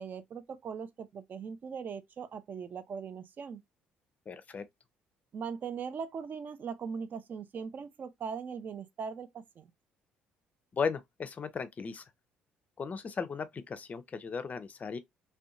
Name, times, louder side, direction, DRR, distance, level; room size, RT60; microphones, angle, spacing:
voice 1, 0.0-3.6 5.3-9.7, right 6 dB, 45° right, 0.4 m, -40 dB
voice 2, 4.3-4.7 10.7-12.0 12.8-15.0, left 5 dB, 35° left, 0.4 m, -36 dB
2.6 x 2.1 x 2.4 m
hypercardioid pair, 55°, 4 cm